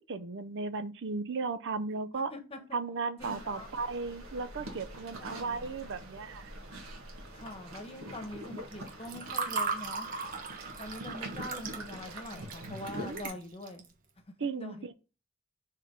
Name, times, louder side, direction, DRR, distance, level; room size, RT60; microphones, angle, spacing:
voice 1, 0.0-2.3 2.7-6.5 13.0-13.3 14.4-14.9, right 4 dB, 60° right, 0.6 m, -36 dB
voice 2, 2.3-2.8 3.2-3.8 5.2-5.7 7.3-10.1 10.8-13.8 14.3-14.8, left 1 dB, 30° left, 1.1 m, -44 dB
sound 1, 3.2-13.3, right 1 dB, 80° right, 1.8 m, -45 dB
Water / Fill (with liquid), 8.7-13.9, right 4 dB, 40° right, 1.3 m, -37 dB
6.5 x 3.8 x 5.0 m
head